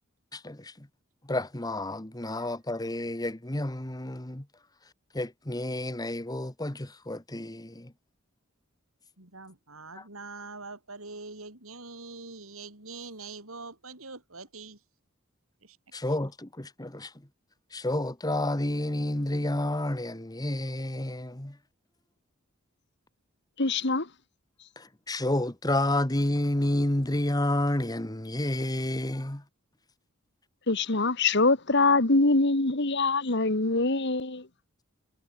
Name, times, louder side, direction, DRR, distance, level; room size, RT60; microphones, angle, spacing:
voice 1, 0.3-0.9 1.2-4.5 5.1-7.9 9.9-10.0 15.9-17.3 17.7-21.6 24.8-29.4, left 1 dB, 20° left, 1.4 m, -30 dB
voice 2, 9.2-14.8 15.6-15.8, right 3 dB, 85° right, 6.7 m, -44 dB
voice 3, 23.6-24.1 30.7-34.5, left 3 dB, 55° left, 2.0 m, -24 dB
head